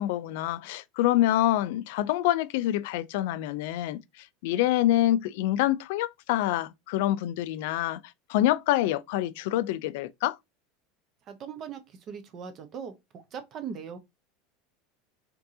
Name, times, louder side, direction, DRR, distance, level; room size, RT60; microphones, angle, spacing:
voice 1, 0.0-8.0 8.3-10.4, left 14 dB, 65° left, 0.4 m, -26 dB
voice 2, 11.3-14.0, right 7 dB, 35° right, 0.8 m, -40 dB
4.5 x 3.7 x 2.7 m
supercardioid pair, 160°, 0 cm